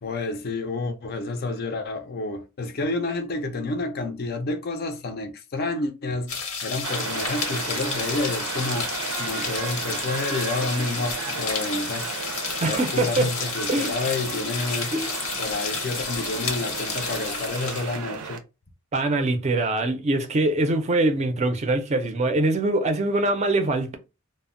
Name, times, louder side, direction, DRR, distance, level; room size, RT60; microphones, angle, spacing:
voice 1, 0.0-6.4 6.6-8.9 9.2-12.1 12.6-14.9 15.4-18.4, left 3 dB, 45° left, 0.4 m, -29 dB
sound 1, 6.3-18.0, left 5 dB, 85° left, 0.8 m, -31 dB
sound 2, 6.8-18.4, right 6 dB, 85° right, 0.5 m, -34 dB
voice 2, 12.6-13.3 13.7-14.0 14.9-15.1 18.9-24.0, right 2 dB, 30° right, 0.4 m, -23 dB
2.1 x 2.0 x 3.6 m
head